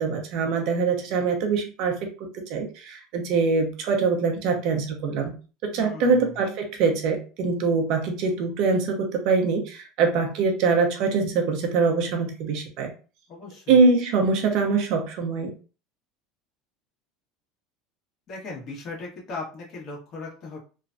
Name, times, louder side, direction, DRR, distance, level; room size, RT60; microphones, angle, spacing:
voice 1, 0.0-2.0 2.5-5.4 5.7-12.9 13.7-15.5, right 4 dB, 60° right, 3 dB, 0.8 m, -23 dB
voice 2, 5.7-6.4 13.3-13.8 18.3-20.6, left 3 dB, 40° left, -3 dB, 1.4 m, -38 dB
3.1 x 2.2 x 2.6 m, 0.35 s
supercardioid pair, 135°, 0 cm